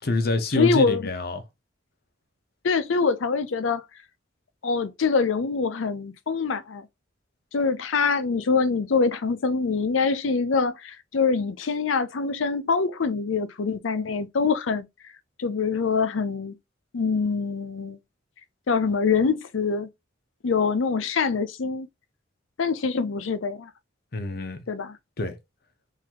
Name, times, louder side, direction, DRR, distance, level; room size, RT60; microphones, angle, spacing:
voice 1, 0.0-1.4 24.1-24.7 25.2-25.4, left 2 dB, 55° left, 0.8 m, -26 dB
voice 2, 0.6-1.1 2.6-3.8 4.6-6.9 7.5-14.9 15.4-16.5 16.9-18.0 18.7-19.9 20.4-21.9 22.6-23.7 24.7-25.0, left 5 dB, 80° left, 0.5 m, -24 dB
3.9 x 2.6 x 2.9 m
head